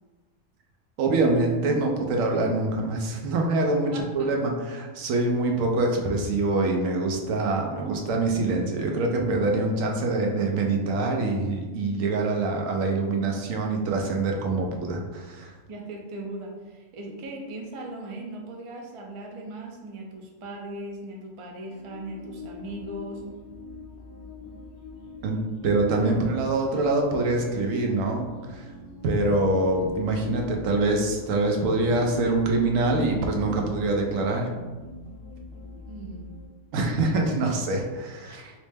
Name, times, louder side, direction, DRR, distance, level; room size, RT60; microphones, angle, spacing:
voice 1, 1.0-15.5 25.2-28.7 29.0-34.5 36.7-38.5, right 2 dB, 90° right, 1 dB, 1.0 m, -25 dB
voice 2, 3.9-4.3 15.7-23.2 35.8-36.3, right 1 dB, 60° right, 1 dB, 0.3 m, -38 dB
sound 1, 21.7-36.5, left 2 dB, 45° left, 0.4 m, -43 dB
3.1 x 3.1 x 3.3 m, 1.3 s
omnidirectional pair, 1.3 m